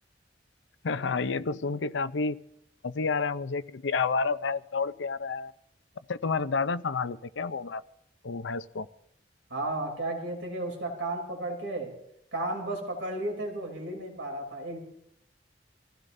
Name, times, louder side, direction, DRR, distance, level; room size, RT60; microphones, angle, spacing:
voice 1, 0.8-2.4 2.8-5.5 6.1-7.8 8.2-8.9, left 4 dB, 90° left, 14 dB, 0.6 m, -30 dB
voice 2, 9.5-11.9 12.3-14.8, right 1 dB, 90° right, 1 dB, 3.4 m, -33 dB
26.0 x 15.0 x 2.7 m, 0.76 s
head